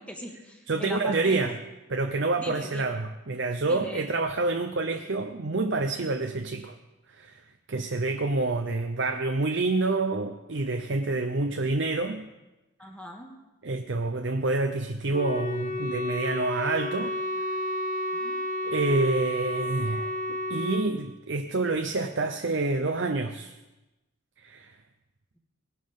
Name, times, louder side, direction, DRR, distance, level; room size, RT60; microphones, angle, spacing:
voice 1, 0.0-1.5 2.4-2.9 3.6-4.1 12.8-13.3 18.1-18.4, left 1 dB, 5° left, 0 dB, 1.8 m, -40 dB
voice 2, 0.7-1.6 1.9-6.8 7.1-7.4 7.7-12.3 13.6-17.2 17.5-17.6 18.6-23.5 24.4-24.7, right 3 dB, 55° right, 5 dB, 0.7 m, -28 dB
Wind instrument woodwind instrument, 15.1-20.9, left 1 dB, 35° left, 0.8 m, -31 dB
19.5 x 11.5 x 3.7 m, 1.0 s
head